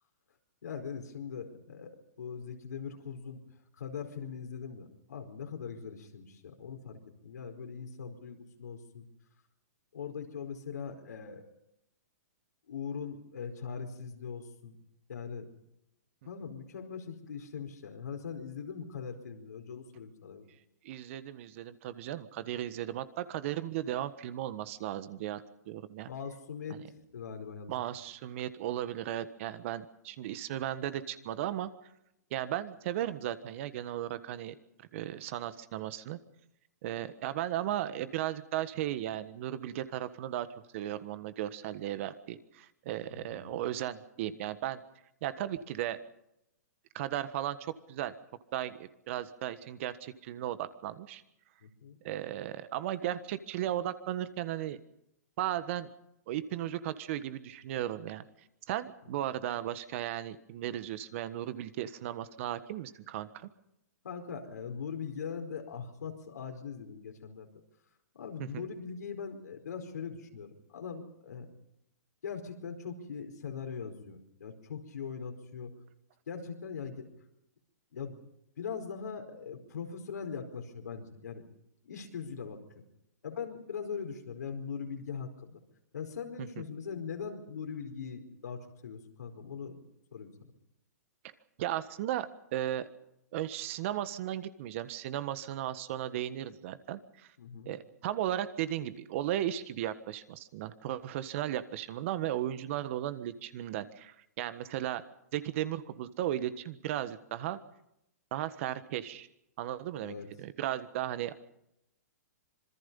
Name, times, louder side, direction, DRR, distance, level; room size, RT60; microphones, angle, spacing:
voice 1, 0.6-3.4 3.8-9.1 9.9-11.5 12.7-14.7 15.1-15.5 16.2-20.5 26.0-26.8 27.1-27.7 43.1-43.5 51.6-52.0 64.0-67.5 68.1-71.5 72.2-75.7 76.3-77.1 77.9-78.2 78.6-81.4 81.8-82.6 83.2-85.6 85.9-89.8 90.1-90.3 97.4-97.8 110.0-110.3, left 6 dB, 80° left, 4 dB, 4.7 m, -41 dB
voice 2, 20.8-26.1 26.7-26.8 27.7-31.7 32.3-34.5 34.9-36.2 36.8-40.5 40.7-44.8 45.2-46.0 46.9-47.6 47.9-48.1 48.5-51.2 52.0-54.8 55.4-55.9 56.3-58.2 58.7-63.5 68.4-68.7 86.4-86.6 91.6-92.9 93.3-97.3 97.6-105.0 105.3-107.6 108.3-109.3 109.6-111.4, right 12 dB, 50° right, 13 dB, 1.5 m, -36 dB
26.0 x 21.5 x 5.5 m, 0.82 s
hypercardioid pair, 135°, 9 cm